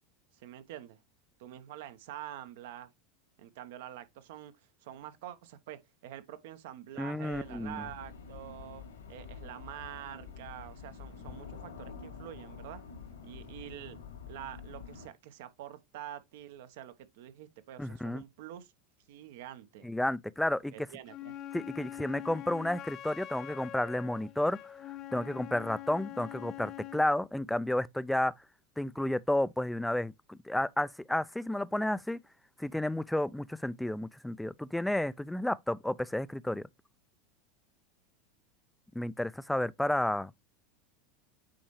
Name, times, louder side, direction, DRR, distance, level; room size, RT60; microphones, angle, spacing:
voice 1, 0.3-1.0 1.4-2.9 3.4-4.5 4.8-12.8 13.2-14.0 14.3-18.7 19.1-19.9 20.7-21.4, right 11 dB, 70° right, 1.1 m, -46 dB
voice 2, 7.0-7.8 17.8-18.2 19.8-20.9 21.5-24.7 25.1-28.3 28.8-32.2 32.6-36.7 38.9-40.3, left 1 dB, 5° left, 0.4 m, -31 dB
sound 1, 7.3-15.1, left 6 dB, 85° left, 2.6 m, -47 dB
Wind instrument woodwind instrument, 21.1-27.1, left 12 dB, 45° left, 0.7 m, -44 dB
8.9 x 4.2 x 3.2 m
hypercardioid pair, 95°, 0 cm